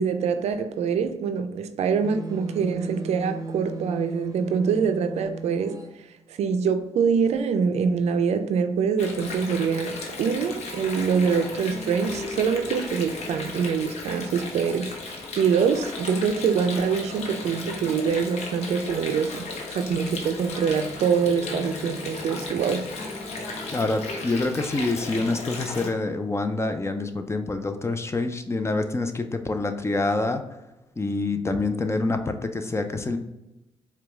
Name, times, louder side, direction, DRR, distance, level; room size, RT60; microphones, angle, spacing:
voice 1, 0.0-5.8 6.3-19.4 19.7-22.9, right 6 dB, 70° right, 0.4 m, -25 dB
sound 1, 2.0-5.9, right 3 dB, 30° right, 0.7 m, -36 dB
Water, 9.0-25.9, left 3 dB, 70° left, 0.8 m, -35 dB
voice 2, 23.7-30.4 31.0-33.2, left 2 dB, 25° left, 0.5 m, -26 dB
4.6 x 2.3 x 3.4 m
supercardioid pair, 50°, 12 cm